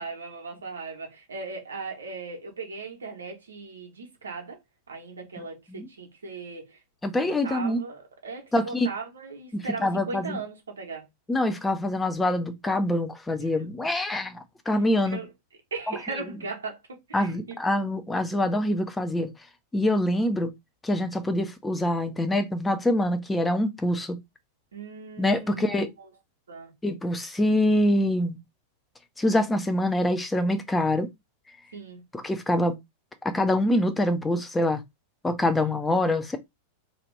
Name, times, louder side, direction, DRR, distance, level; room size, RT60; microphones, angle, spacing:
voice 1, 0.0-4.6 4.9-6.8 7.2-11.1 15.0-15.3 15.7-17.6 24.7-25.8 26.5-26.7 31.7-32.0 35.6-35.8, right 4 dB, 70° right, 0.8 m, -38 dB
voice 2, 7.0-7.8 8.5-8.9 9.5-10.4 11.3-15.2 15.9-16.0 17.1-19.3 19.7-20.5 20.8-24.2 25.2-25.9 26.8-28.4 29.2-31.1 32.1-32.8 33.2-34.8 35.2-36.4, left 1 dB, 10° left, 0.5 m, -25 dB
2.6 x 2.5 x 3.1 m
figure-of-eight pair, 90°, 0 cm